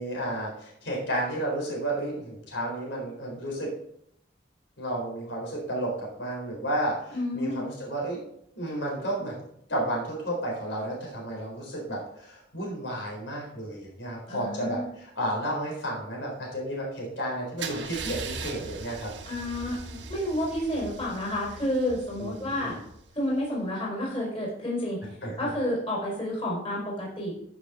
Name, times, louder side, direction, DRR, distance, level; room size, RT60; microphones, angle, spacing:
voice 1, 0.0-3.7 4.8-8.2 8.6-9.4 9.7-19.1 22.2-22.8 25.2-25.5, right 1 dB, 85° left, -2 dB, 4.2 m, -32 dB
voice 2, 7.1-7.6 14.3-14.8 19.2-22.8 23.1-25.0 25.4-27.3, left 1 dB, 30° left, -5 dB, 4.9 m, -30 dB
Car / Engine starting / Idling, 17.6-23.4, right 4 dB, 75° right, 1.5 m, -40 dB
14.5 x 6.6 x 3.8 m, 0.73 s
head